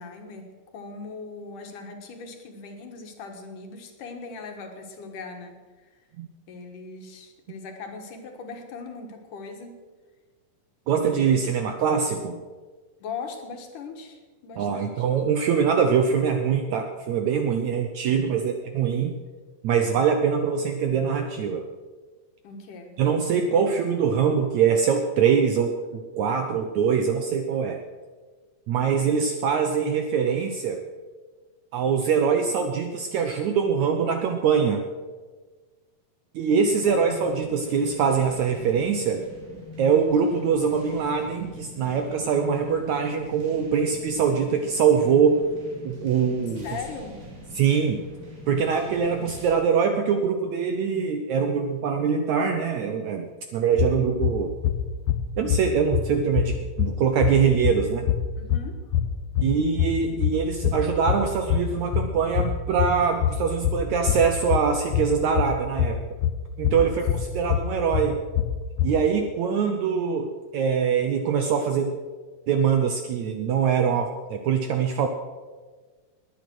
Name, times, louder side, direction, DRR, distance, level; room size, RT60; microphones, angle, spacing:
voice 1, 0.0-5.6 6.5-9.8 10.9-11.4 13.0-15.1 18.3-18.5 22.4-23.0 36.9-37.0 46.6-47.2 58.4-58.8 66.7-66.9 73.8-74.0, left 4 dB, 65° left, 4 dB, 2.9 m, -40 dB
voice 2, 10.9-12.4 14.6-19.2 19.6-21.7 23.0-27.8 28.7-30.8 31.7-34.8 36.4-39.2 39.8-45.4 45.8-46.7 47.5-48.0 48.5-54.5 55.4-58.1 59.4-66.0 66.6-68.2 68.8-71.9 72.5-75.1, right 6 dB, 70° right, 5 dB, 1.8 m, -23 dB
sound 1, 36.6-49.5, equal, 55° right, 5.4 m, -42 dB
sound 2, 53.8-69.1, left 9 dB, 85° left, 1.5 m, -26 dB
20.0 x 9.1 x 6.2 m, 1.4 s
omnidirectional pair, 4.2 m